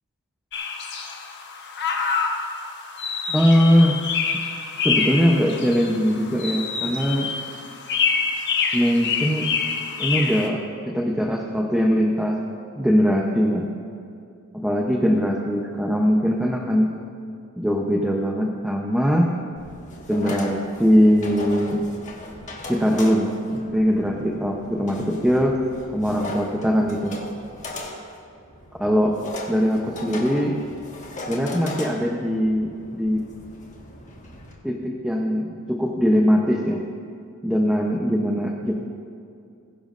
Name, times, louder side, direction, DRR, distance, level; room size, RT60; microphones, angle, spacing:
sound 1, 0.5-10.5, left 5 dB, 50° left, 1.1 m, -27 dB
voice 1, 3.3-4.0 4.8-7.3 8.7-9.5 10.0-12.4 12.8-13.7 14.5-16.9 17.6-19.3 20.1-21.8 22.7-25.5 25.9-27.2 28.8-29.2 29.5-30.6 31.3-33.3 34.6-36.9 37.4-38.7, equal, 5° right, 0 dB, 0.7 m, -21 dB
sound 2, 19.6-34.5, left 2 dB, 35° left, 1.6 m, -38 dB
20.5 x 10.5 x 2.6 m, 2.5 s
head